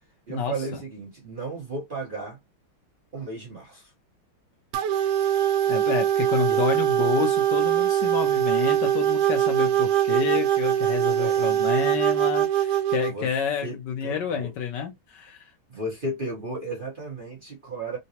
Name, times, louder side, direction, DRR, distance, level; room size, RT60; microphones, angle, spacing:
voice 1, 0.3-2.4 3.1-3.9 6.4-6.6 11.2-11.9 13.1-13.3 13.6-13.8 14.0-14.5 15.7-18.0, right 2 dB, 35° right, 1.0 m, -34 dB
sound 1, 4.7-13.1, right 11 dB, 85° right, 1.4 m, -22 dB
voice 2, 5.7-15.5, left 7 dB, 70° left, 1.2 m, -29 dB
3.9 x 2.2 x 2.7 m
omnidirectional pair, 2.2 m